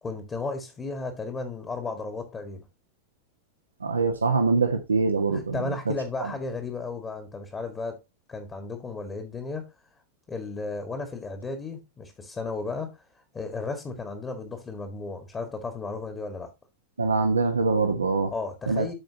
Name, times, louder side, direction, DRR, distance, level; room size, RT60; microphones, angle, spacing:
voice 1, 0.0-2.6 5.3-8.0 8.3-9.6 10.3-12.9 13.3-16.5 18.3-18.9, left 3 dB, 20° left, 1.8 m, -34 dB
voice 2, 3.8-5.6 6.2-6.3 17.0-18.3 18.7-18.9, right 4 dB, 75° right, 1.2 m, -24 dB
13.0 x 5.1 x 2.8 m
figure-of-eight pair, 90°, 0 cm